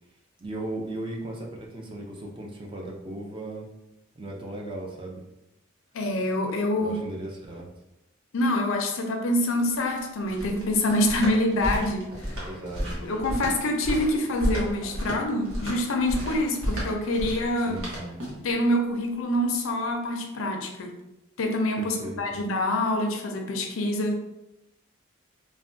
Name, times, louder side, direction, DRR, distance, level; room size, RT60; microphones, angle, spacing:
voice 1, 0.4-3.7 4.2-5.2 6.8-7.7 12.4-13.1 17.7-18.1 21.8-22.4, right 1 dB, 25° right, -1 dB, 0.4 m, -37 dB
voice 2, 5.9-7.0 8.3-12.4 13.0-17.8 18.4-20.9 21.4-24.2, left 1 dB, 75° left, 3 dB, 0.5 m, -26 dB
sound 1, 9.6-18.5, equal, 85° right, 1.0 m, -32 dB
3.3 x 2.1 x 2.6 m, 0.90 s
head